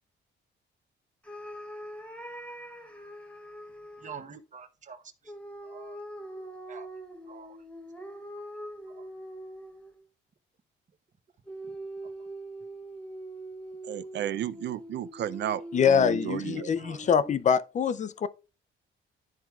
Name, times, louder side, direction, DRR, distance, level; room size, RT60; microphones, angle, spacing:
sound 1, 1.2-4.2 5.3-10.0 11.5-17.6, right 1 dB, 5° left, 0.8 m, -42 dB
voice 1, 4.0-5.3 5.6-6.0 6.7-6.9 7.3-7.6 8.9-9.1 12.0-12.3 16.7-17.1, right 6 dB, 40° right, 0.9 m, -47 dB
voice 2, 13.9-16.7, right 11 dB, 60° right, 0.5 m, -33 dB
voice 3, 15.7-18.3, left 7 dB, 35° left, 0.5 m, -24 dB
12.0 x 4.5 x 2.3 m
cardioid pair, 115°, 20 cm